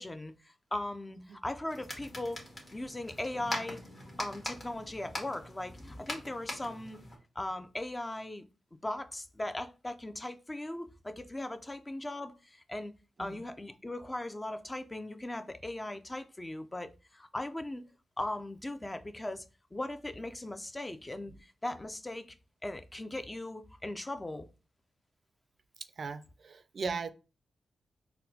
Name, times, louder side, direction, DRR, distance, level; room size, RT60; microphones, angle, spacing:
voice 1, 0.0-2.4 2.7-3.8 4.2-7.0 7.4-8.4 8.8-12.9 13.2-17.8 18.2-19.4 19.7-22.3 22.6-24.5, left 1 dB, 20° left, 0.3 m, -39 dB
sound 1, 1.7-7.2, left 1 dB, 40° left, 1.3 m, -42 dB
voice 2, 26.0-27.1, right 4 dB, 60° right, 0.3 m, -38 dB
4.1 x 2.1 x 2.7 m
cardioid pair, 65°, 0 cm